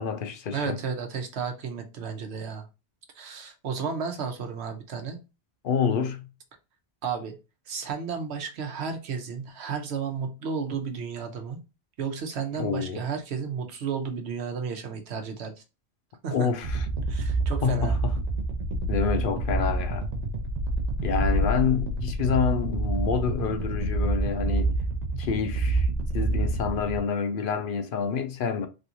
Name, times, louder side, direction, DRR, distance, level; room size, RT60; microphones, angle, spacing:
voice 1, 0.0-0.8 5.6-6.3 12.5-13.0 16.3-16.9 17.6-18.1 18.9-20.1 21.0-24.7 25.2-25.9 26.1-28.7, left 6 dB, 60° left, 0.7 m, -28 dB
voice 2, 0.5-2.7 3.1-5.2 7.0-7.4 7.7-11.6 12.0-15.6 16.2-16.5 17.1-18.0, right 6 dB, 85° right, 1.0 m, -33 dB
sound 1, 16.6-27.0, right 2 dB, 55° right, 0.5 m, -27 dB
3.3 x 2.5 x 2.8 m
omnidirectional pair, 1.1 m